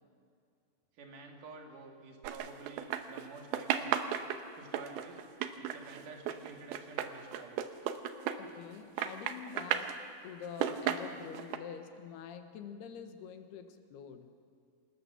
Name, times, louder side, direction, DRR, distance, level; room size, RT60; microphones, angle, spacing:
voice 1, 1.0-4.0 4.5-5.2 5.6-7.6, right 3 dB, 55° right, 1 dB, 3.6 m, -50 dB
sound 1, 2.2-3.3 3.5-8.7 9.0-10.0 10.4-11.6, right 10 dB, 75° right, 2.6 m, -34 dB
voice 2, 8.4-10.0 10.2-14.3, left 7 dB, 75° left, 7 dB, 3.1 m, -46 dB
26.5 x 19.0 x 7.1 m, 2.3 s
omnidirectional pair, 4.9 m